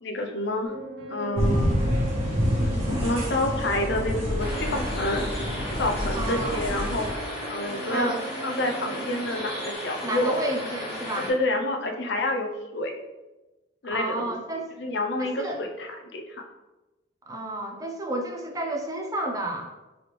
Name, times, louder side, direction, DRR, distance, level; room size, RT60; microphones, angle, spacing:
voice 1, 0.0-0.7 1.1-1.7 2.6-5.2 5.7-8.1 8.4-10.4 11.2-13.0 13.8-14.4 14.8-16.4, left 1 dB, 60° left, 3 dB, 0.5 m, -29 dB
sound 1, 0.6-9.8, right 1 dB, 70° right, 0.8 m, -40 dB
sound 2, 1.4-7.1, equal, 35° right, 1.2 m, -27 dB
sound 3, 4.4-11.3, equal, 30° left, 1.1 m, -35 dB
voice 2, 6.1-6.6 7.9-8.2 10.0-11.3 13.9-14.7 15.2-15.6 17.3-19.7, right 1 dB, 20° right, 2 dB, 0.4 m, -31 dB
3.9 x 3.2 x 3.1 m, 1.1 s
head